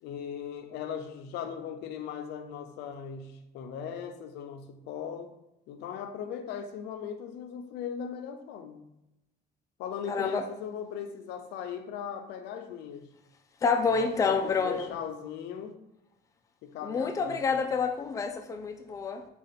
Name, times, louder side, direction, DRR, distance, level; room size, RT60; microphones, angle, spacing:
voice 1, 0.0-5.3 5.7-8.9 9.8-13.1 14.0-15.8 16.6-17.6, left 7 dB, 85° left, 8 dB, 0.4 m, -38 dB
voice 2, 10.1-10.5 13.6-14.9 16.8-19.3, left 5 dB, 20° left, 5 dB, 0.3 m, -28 dB
3.7 x 2.3 x 3.4 m, 0.88 s
cardioid pair, 110°, 17 cm